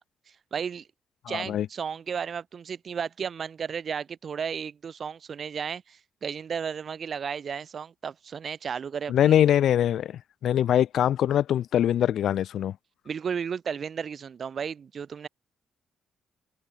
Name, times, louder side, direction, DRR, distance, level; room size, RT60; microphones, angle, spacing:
voice 1, 0.5-0.9 1.3-9.4 13.0-15.3, right 7 dB, 50° right, 2.4 m, -33 dB
voice 2, 1.3-1.7 9.1-12.7, left 10 dB, 75° left, 0.7 m, -23 dB
cardioid pair, 100°, 0 cm